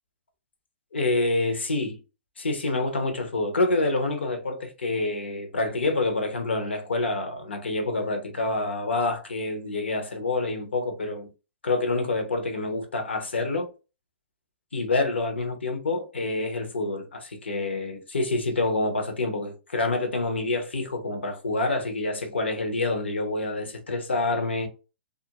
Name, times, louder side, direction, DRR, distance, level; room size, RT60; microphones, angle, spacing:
voice 1, 0.9-2.0 2.4-11.3 11.6-13.7 14.7-24.7, left 2 dB, 85° left, 0.8 m, -27 dB
2.5 x 2.1 x 2.8 m
hypercardioid pair, 130°, 6 cm